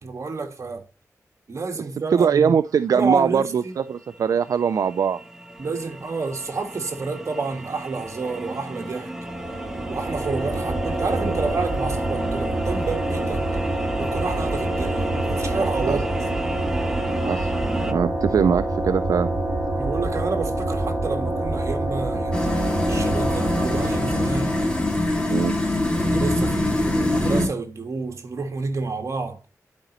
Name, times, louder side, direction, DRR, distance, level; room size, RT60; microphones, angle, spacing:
voice 1, 0.0-0.9 1.5-2.6 2.9-3.7 5.6-9.1 9.9-13.4 14.0-16.1 19.7-24.6 25.9-29.4, right 4 dB, 55° right, 1.7 m, -29 dB
voice 2, 2.1-5.2 15.9-16.0 17.3-17.5 17.8-19.3 25.3-25.6, right 7 dB, 75° right, 0.4 m, -21 dB
sound 1, 4.0-17.9, right 1 dB, 10° right, 1.1 m, -34 dB
sound 2, 9.2-25.1, right 1 dB, 40° right, 3.0 m, -26 dB
sound 3, 22.3-27.5, left 1 dB, 15° left, 2.5 m, -23 dB
11.5 x 5.1 x 3.0 m
wide cardioid pair, 80°, 6 cm